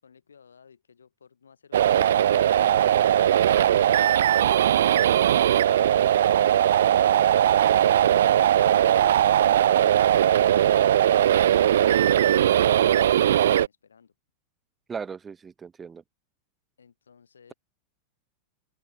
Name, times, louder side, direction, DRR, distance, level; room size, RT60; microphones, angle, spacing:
voice 1, 0.0-7.6 8.4-9.8 10.1-14.1 16.8-17.5, left 6 dB, 70° left, 6.7 m, -57 dB
sound 1, 1.7-13.7, right 10 dB, 60° right, 0.4 m, -19 dB
voice 2, 14.9-16.0, right 6 dB, 20° right, 0.6 m, -37 dB
open air
figure-of-eight pair, 90°, 0 cm